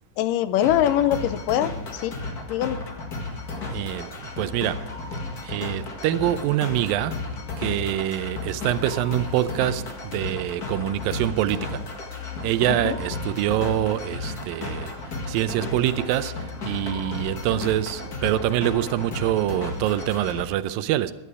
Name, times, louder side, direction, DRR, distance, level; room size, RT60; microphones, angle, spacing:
voice 1, 0.2-2.1 2.5-2.8 12.8-13.0, left 11 dB, 80° left, 2.2 m, -23 dB
sound 1, 0.6-20.4, left 3 dB, 35° left, 1.6 m, -33 dB
voice 2, 3.7-4.9 5.4-7.2 7.6-11.8 12.4-21.1, right 13 dB, 85° right, 2.4 m, -25 dB
17.0 x 12.5 x 4.8 m
omnidirectional pair, 4.0 m